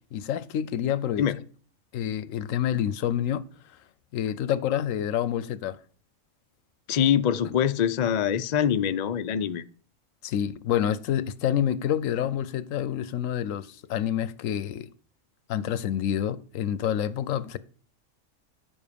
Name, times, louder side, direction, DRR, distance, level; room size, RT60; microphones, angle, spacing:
voice 1, 0.1-1.2 1.9-3.5 4.1-5.8 10.2-14.9 15.5-17.6, left 10 dB, 80° left, 1.0 m, -28 dB
voice 2, 6.9-9.6, left 9 dB, 55° left, 0.5 m, -24 dB
10.5 x 7.3 x 5.1 m
omnidirectional pair, 1.4 m